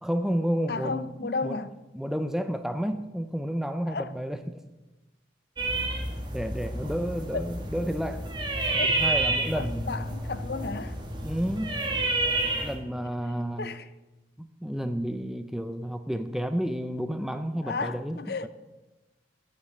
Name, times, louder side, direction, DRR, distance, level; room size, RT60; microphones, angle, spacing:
voice 1, 0.0-1.6 1.9-4.6 6.3-8.3 8.8-9.9 11.2-11.8 12.6-13.7 14.4-18.5, equal, ahead, 0.4 m, -31 dB
voice 2, 0.7-1.8 3.9-4.1 7.3-7.4 8.8-8.9 9.6-11.0 13.6-13.9 17.6-18.5, left 4 dB, 55° left, 0.6 m, -33 dB
sound 1, 5.6-12.8, right 2 dB, 25° right, 1.7 m, -29 dB
9.8 x 7.0 x 8.5 m
head